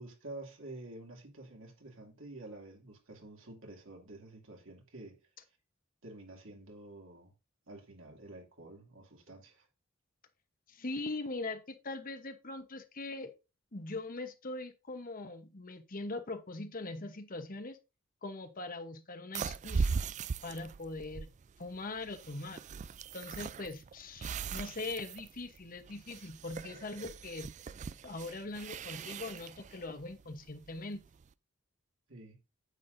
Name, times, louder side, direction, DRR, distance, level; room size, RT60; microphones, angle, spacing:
voice 1, 0.0-5.2 6.0-7.3 7.7-9.7 32.1-32.4, right 2 dB, 70° right, 2.6 m, -49 dB
voice 2, 10.7-13.3 13.7-17.8 18.2-20.0 20.4-21.3 21.6-22.6 23.1-27.5 28.0-31.0, left 2 dB, 40° left, 1.0 m, -41 dB
sound 1, 19.3-31.2, right 5 dB, 35° right, 0.3 m, -39 dB
9.3 x 8.5 x 2.6 m
head